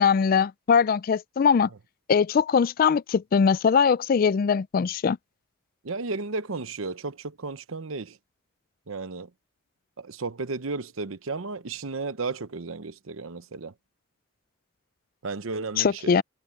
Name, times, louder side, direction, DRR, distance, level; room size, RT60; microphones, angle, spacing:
voice 1, 0.0-1.7 2.1-5.2 15.8-16.2, left 6 dB, 45° left, 0.3 m, -21 dB
voice 2, 5.8-8.2 8.9-9.3 10.0-13.7 15.2-16.1, right 3 dB, 80° right, 0.9 m, -33 dB
head